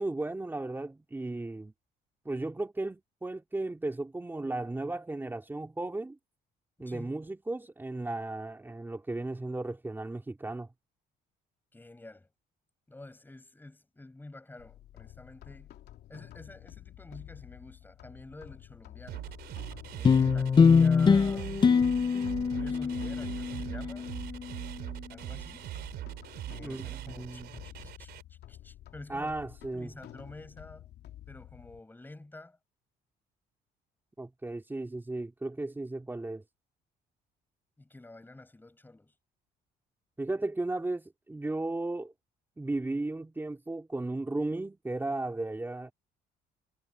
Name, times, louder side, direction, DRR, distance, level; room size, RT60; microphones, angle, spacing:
voice 1, 0.0-1.7 2.2-6.2 6.8-10.7 26.6-27.5 29.1-29.9 34.2-36.4 40.2-42.1 42.6-45.9, right 2 dB, 10° right, 2.8 m, -35 dB
voice 2, 6.8-7.1 11.7-12.3 12.9-15.7 16.1-19.3 19.9-21.6 22.5-24.1 25.1-25.7 26.5-29.4 29.7-30.9 31.3-32.6 37.8-39.1, left 2 dB, 10° left, 5.6 m, -49 dB
sound 1, 14.6-31.8, left 13 dB, 70° left, 3.0 m, -50 dB
sound 2, 19.1-28.2, right 14 dB, 75° right, 4.4 m, -41 dB
sound 3, 20.0-24.7, left 5 dB, 25° left, 0.7 m, -24 dB
cardioid pair, 110°, 17 cm